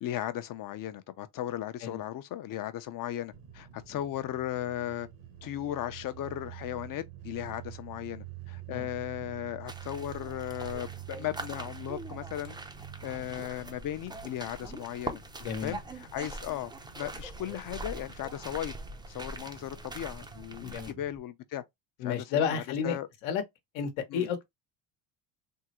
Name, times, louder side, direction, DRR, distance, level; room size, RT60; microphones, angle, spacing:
voice 1, 0.0-5.1 5.4-12.6 13.0-15.2 15.6-18.7 19.1-21.6 22.0-23.1 24.1-24.3, left 12 dB, 45° left, 0.6 m, -36 dB
sound 1, 3.3-21.2, right 10 dB, 75° right, 1.2 m, -48 dB
sound 2, 9.7-20.9, right 2 dB, 10° right, 0.4 m, -43 dB
voice 2, 15.4-15.7 20.6-20.9 22.0-23.0 23.2-23.4 23.7-24.5, left 7 dB, 80° left, 1.0 m, -31 dB
3.6 x 2.1 x 2.8 m
cardioid pair, 100°, 46 cm